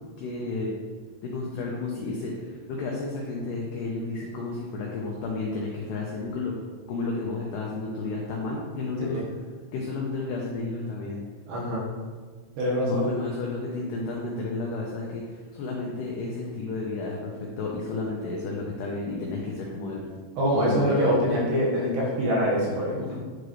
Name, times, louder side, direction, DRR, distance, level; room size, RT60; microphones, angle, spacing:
voice 1, 0.2-0.7 1.2-6.5 6.9-9.2 9.7-11.2 12.8-20.0 20.5-21.1 23.0-23.2, left 3 dB, 85° left, -2 dB, 2.3 m, -32 dB
voice 2, 11.5-11.8 12.6-13.1 20.4-23.0, equal, 65° right, -5 dB, 3.0 m, -24 dB
11.0 x 4.9 x 3.1 m, 1.5 s
omnidirectional pair, 5.8 m